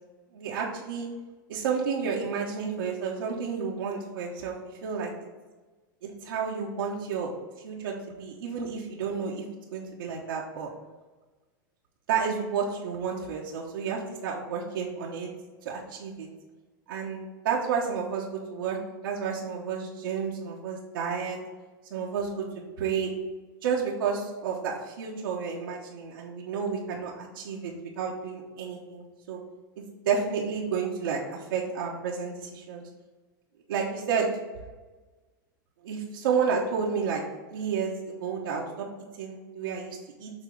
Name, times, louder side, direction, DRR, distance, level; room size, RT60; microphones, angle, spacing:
voice 1, 0.3-1.1 1.5-4.6 4.8-5.1 6.0-7.3 7.6-9.4 9.7-10.7 12.1-15.3 15.6-16.3 16.9-18.8 19.0-21.4 21.9-23.1 23.6-29.4 29.8-32.9 33.7-34.3 35.8-37.2 37.5-38.9 39.2-40.3, right 6 dB, 80° right, -3 dB, 1.2 m, -31 dB
7.2 x 2.9 x 5.2 m, 1.3 s
hypercardioid pair, 125°, 11 cm